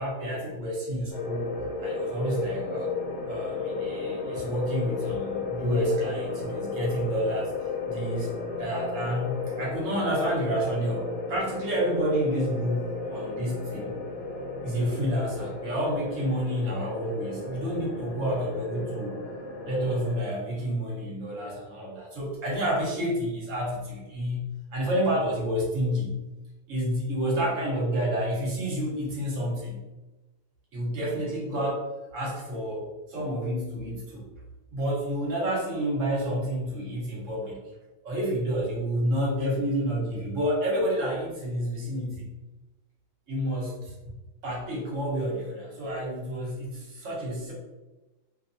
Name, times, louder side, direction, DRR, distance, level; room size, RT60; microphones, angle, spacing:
voice 1, 0.0-1.5 1.8-2.9 3.3-8.3 8.6-14.0 14.6-19.2 19.7-26.2 26.7-29.8 30.7-34.2 34.7-37.6 38.0-42.3 43.3-43.9 44.4-47.5, equal, 55° right, -4 dB, 1.1 m, -29 dB
sound 1, 1.1-20.2, left 4 dB, 80° left, 1.3 m, -34 dB
2.7 x 2.3 x 2.6 m, 1.1 s
omnidirectional pair, 1.8 m